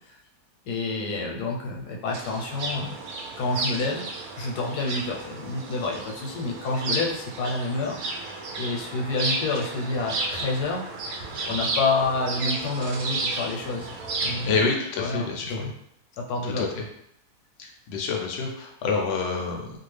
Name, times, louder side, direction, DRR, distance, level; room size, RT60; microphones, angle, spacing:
voice 1, 0.7-2.9 3.4-4.1 4.4-8.0 8.6-10.8 11.5-13.9 14.2-14.6 15.0-15.3 15.6-15.7 16.2-16.7, left 3 dB, 85° left, 0 dB, 1.2 m, -28 dB
sound 1, 2.1-14.7, right 3 dB, 75° right, 1.0 m, -32 dB
voice 2, 14.4-15.7 16.4-16.8 17.6-19.8, left 4 dB, 65° left, 1 dB, 0.6 m, -28 dB
2.7 x 2.4 x 3.2 m, 0.76 s
omnidirectional pair, 1.6 m